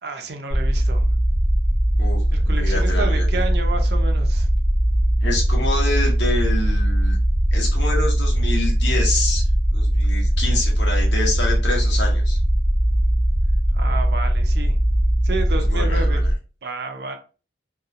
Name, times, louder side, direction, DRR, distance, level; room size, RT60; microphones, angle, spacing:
voice 1, 0.0-1.1 2.3-4.5 13.7-14.8 15.2-16.2 16.6-17.2, right 3 dB, 60° right, 5 dB, 0.5 m, -30 dB
sound 1, 0.5-16.3, right 1 dB, 5° right, 0.8 m, -19 dB
voice 2, 2.0-3.4 5.2-7.2 7.5-9.4 9.7-12.4 15.6-16.3, left 2 dB, 75° left, -1 dB, 0.9 m, -27 dB
2.7 x 2.2 x 2.4 m, 0.35 s
head